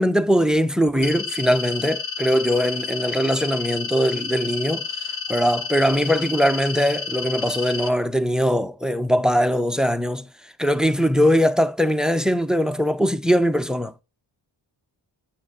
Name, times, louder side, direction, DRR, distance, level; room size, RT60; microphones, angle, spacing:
voice 1, 0.0-4.9 5.3-10.3 10.6-14.0, equal, ahead, 0.7 m, -21 dB
sound 1, 1.0-7.9, left 5 dB, 75° left, 1.4 m, -30 dB
9.8 x 6.1 x 5.1 m
cardioid pair, 75°, 47 cm